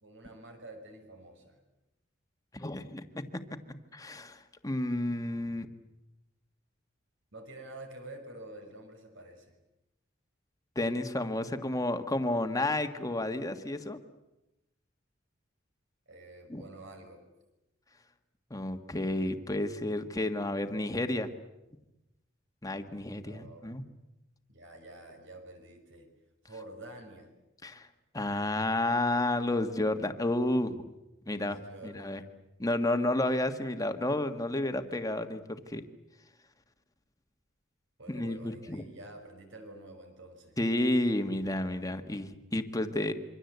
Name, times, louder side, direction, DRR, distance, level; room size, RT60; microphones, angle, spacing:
voice 1, 0.0-1.6 7.3-9.5 16.1-17.2 23.2-23.7 24.5-26.1 26.4-27.3 31.4-32.2 38.0-40.6, right 2 dB, 70° right, 5 dB, 5.8 m, -48 dB
voice 2, 2.5-3.6 3.9-5.7 10.7-14.0 16.5-16.6 18.5-21.3 22.6-23.8 27.6-27.9 28.1-30.9 31.2-32.2 32.6-35.8 38.1-38.8 40.6-43.1, left 1 dB, 20° left, 7 dB, 1.6 m, -31 dB
27.0 x 24.5 x 8.2 m, 0.95 s
head